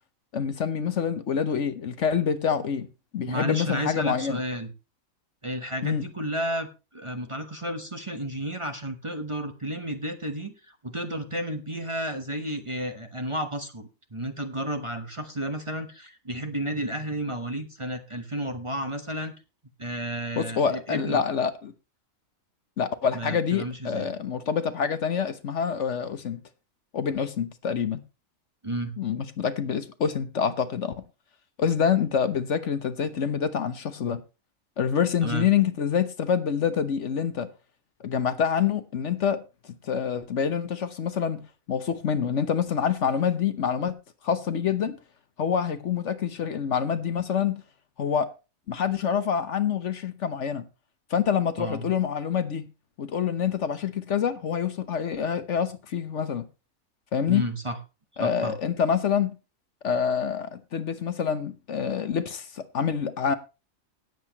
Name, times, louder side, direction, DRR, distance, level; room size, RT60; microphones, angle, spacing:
voice 1, 0.3-2.9 3.1-4.4 5.8-6.1 20.4-21.7 22.8-26.4 26.9-28.0 29.0-30.9 31.6-34.2 34.8-37.5 38.0-39.4 39.8-43.9 44.2-45.0 45.4-47.6 48.0-48.3 48.7-50.6 51.1-52.7 53.0-56.5 57.1-57.5 58.2-59.3 59.8-63.3, left 7 dB, 60° left, 1.2 m, -26 dB
voice 2, 3.2-4.7 5.4-19.3 19.8-21.2 23.1-24.1 28.6-28.9 35.2-35.5 51.6-51.9 57.3-57.8 58.2-58.6, right 1 dB, 25° right, 1.1 m, -32 dB
18.0 x 8.0 x 3.0 m
omnidirectional pair, 1.5 m